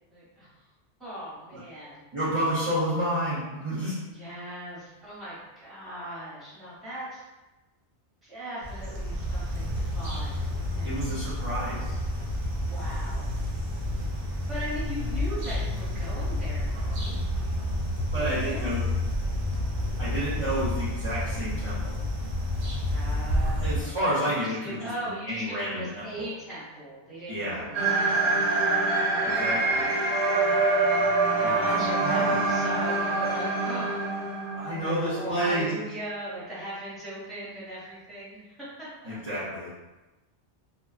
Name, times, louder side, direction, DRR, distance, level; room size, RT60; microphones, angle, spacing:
voice 1, 0.1-0.5 1.0-2.1 4.1-7.2 8.2-11.2 12.4-13.3 14.5-17.2 18.1-18.7 22.9-31.1 31.4-34.2 34.8-39.1, right 1 dB, ahead, -9 dB, 0.8 m, -39 dB
voice 2, 2.1-4.0 10.8-12.0 18.1-18.8 20.0-22.0 23.6-26.3 27.3-27.6 29.2-29.8 31.4-32.5 34.5-35.7 39.1-39.7, equal, 30° right, -11 dB, 0.7 m, -30 dB
sound 1, 8.6-23.8, left 1 dB, 85° right, 1.0 m, -30 dB
sound 2, 27.7-34.9, right 3 dB, 60° right, 0.8 m, -25 dB
2.7 x 2.2 x 2.4 m, 1.1 s
omnidirectional pair, 1.2 m